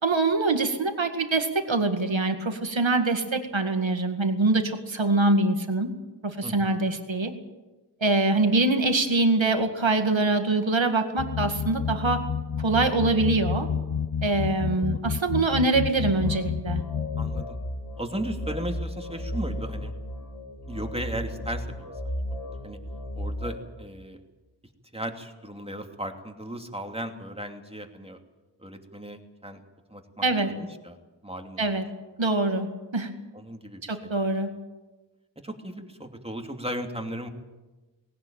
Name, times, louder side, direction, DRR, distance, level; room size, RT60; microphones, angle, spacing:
voice 1, 0.0-5.9 6.2-7.3 8.0-12.2 12.6-13.7 14.2-16.8 30.2-30.5 31.6-31.8 32.2-32.7 32.9-33.1 33.8-34.5, right 2 dB, 90° right, 6 dB, 2.1 m, -24 dB
voice 2, 6.4-6.8 14.7-15.0 17.2-17.6 18.0-19.9 20.7-22.2 22.6-22.8 23.2-24.2 24.9-28.2 28.6-29.6 29.9-31.0 31.2-31.6 33.3-34.3 35.4-37.3, right 1 dB, 15° right, 4 dB, 2.8 m, -36 dB
sound 1, 11.2-17.4, left 7 dB, 55° left, 0.7 m, -30 dB
sound 2, 16.2-23.6, equal, 90° left, 4.9 m, -35 dB
19.5 x 18.0 x 9.0 m, 1.2 s
wide cardioid pair, 40°, 44 cm